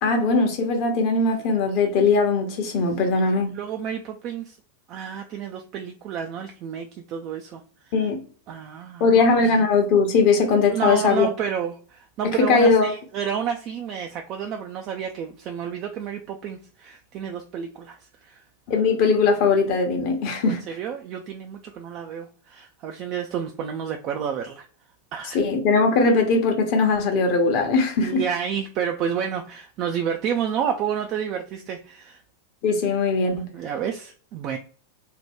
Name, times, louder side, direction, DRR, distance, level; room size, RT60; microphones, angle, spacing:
voice 1, 0.0-3.5 7.9-8.2 9.0-11.3 12.2-12.9 18.7-20.6 25.3-28.2 32.6-33.5, left 4 dB, 45° left, 0.8 m, -20 dB
voice 2, 3.5-4.6 4.9-7.9 8.5-9.6 10.7-18.0 18.2-18.4 20.4-24.6 25.1-25.4 28.0-32.2 33.2-34.6, right 8 dB, 40° right, 0.3 m, -30 dB
2.7 x 2.2 x 3.4 m
figure-of-eight pair, 90°, 0 cm